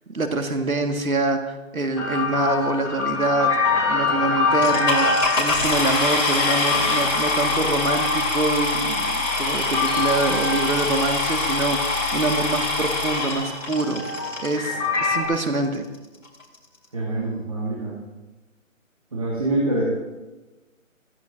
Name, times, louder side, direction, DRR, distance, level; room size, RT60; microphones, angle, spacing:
voice 1, 0.1-3.6 3.9-14.0 14.4-15.9, right 2 dB, 90° right, 5 dB, 1.8 m, -25 dB
sound 1, 2.0-12.2 12.4-15.3, left 4 dB, 20° left, 3.7 m, -26 dB
sound 2, 4.6-14.6 15.3-15.4 15.9-16.0 16.2-16.6, left 2 dB, 60° left, 3.8 m, -24 dB
voice 2, 16.9-18.0 19.1-19.8, right 2 dB, 25° right, -4 dB, 1.8 m, -25 dB
15.0 x 14.5 x 2.6 m, 1.1 s
figure-of-eight pair, 170°, 41 cm